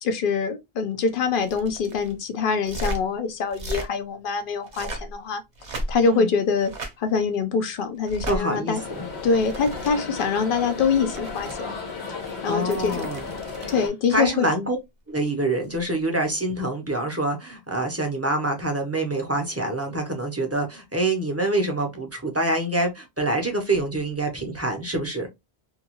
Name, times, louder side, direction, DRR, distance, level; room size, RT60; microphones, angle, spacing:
voice 1, 0.0-5.4 5.7-8.8 9.2-11.7 12.4-13.1 13.7-14.5, left 5 dB, 60° left, 0.8 m, -24 dB
sound 1, 1.4-2.1 2.6-3.0 3.5-3.9 4.6-5.1 5.6-6.2 6.6-6.9 8.0-8.4 9.2-9.9 10.8-11.5 12.6-13.8 15.6-15.8, right 1 dB, 50° right, 0.8 m, -34 dB
voice 2, 8.3-9.1 12.5-13.3 14.1-14.8 15.1-25.3, right 2 dB, 15° right, 0.6 m, -26 dB
sound 2, 8.7-13.9, left 4 dB, 90° left, 1.3 m, -34 dB
2.7 x 2.3 x 2.9 m
omnidirectional pair, 1.1 m